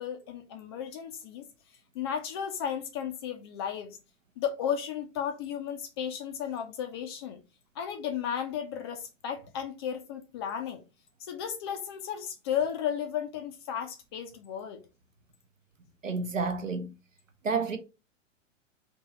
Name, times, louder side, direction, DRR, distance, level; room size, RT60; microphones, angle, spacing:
voice 1, 0.0-1.4 1.9-4.0 4.4-7.4 7.8-10.8 11.2-14.8, left 8 dB, 20° left, 0.4 m, -34 dB
voice 2, 16.0-16.9 17.4-17.8, right 4 dB, 80° right, 0.8 m, -30 dB
3.5 x 2.8 x 4.0 m
figure-of-eight pair, 105°, 38 cm